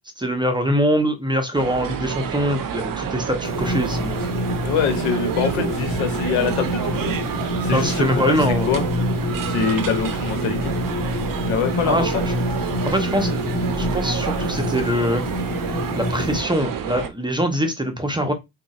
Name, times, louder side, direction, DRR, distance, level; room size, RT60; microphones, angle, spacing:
voice 1, 0.2-4.2 5.6-5.7 7.7-8.8 11.8-12.3 12.9-13.3 13.8-15.2 15.9-18.3, equal, 10° right, 0.7 m, -23 dB
sound 1, 1.5-17.1, right 8 dB, 45° right, 0.6 m, -29 dB
Room Tone Toilet, 3.4-16.4, left 1 dB, 35° left, 1.2 m, -26 dB
voice 2, 4.6-7.2 7.6-8.8 9.4-10.7 11.4-12.3, left 6 dB, 90° left, 0.8 m, -24 dB
3.8 x 2.0 x 2.4 m
supercardioid pair, 50°, 46 cm